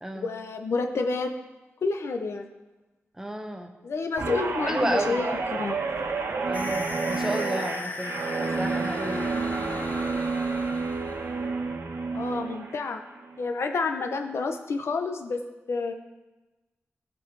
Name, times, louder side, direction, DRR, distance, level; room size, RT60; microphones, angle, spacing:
voice 1, 0.1-1.3 1.8-2.5 3.8-5.8 12.1-13.0 13.4-15.4 15.7-15.9, left 4 dB, 70° left, 5 dB, 0.9 m, -29 dB
voice 2, 3.2-3.7 4.7-5.2 6.4-9.5, right 1 dB, 10° right, 4 dB, 0.9 m, -32 dB
Guitar, 4.2-12.8 13.2-13.5, right 4 dB, 75° right, 1.2 m, -30 dB
sound 1, 6.5-11.4, left 3 dB, 40° left, 0.7 m, -38 dB
16.5 x 5.5 x 4.8 m, 1.1 s
wide cardioid pair, 175°, 5 cm